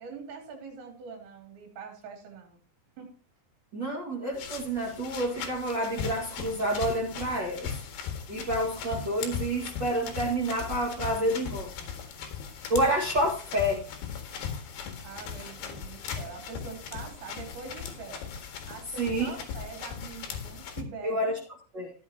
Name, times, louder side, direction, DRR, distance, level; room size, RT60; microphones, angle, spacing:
voice 1, 0.0-2.6 3.0-3.2 15.0-18.3 18.7-21.3, right 5 dB, 70° right, 2 dB, 5.2 m, -44 dB
voice 2, 3.7-7.7 8.3-11.9 12.7-13.9 19.0-19.3 21.0-21.4 21.7-21.9, right 1 dB, 45° right, -2 dB, 1.4 m, -29 dB
sound 1, 4.3-20.8, left 7 dB, 65° left, 3.6 m, -38 dB
15.0 x 10.5 x 2.9 m, 0.39 s
omnidirectional pair, 5.4 m